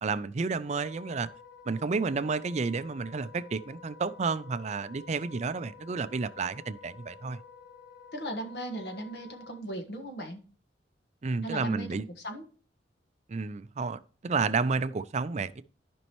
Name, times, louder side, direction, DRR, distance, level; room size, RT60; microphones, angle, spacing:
voice 1, 0.0-1.3 1.7-7.4 11.2-12.0 13.3-15.6, right 4 dB, 40° right, 0.4 m, -31 dB
Wind instrument woodwind instrument, 0.6-9.6, left 5 dB, 90° left, 1.3 m, -51 dB
voice 2, 8.1-10.4 11.4-12.5, right 1 dB, 60° left, 1.5 m, -37 dB
14.0 x 5.3 x 3.0 m
head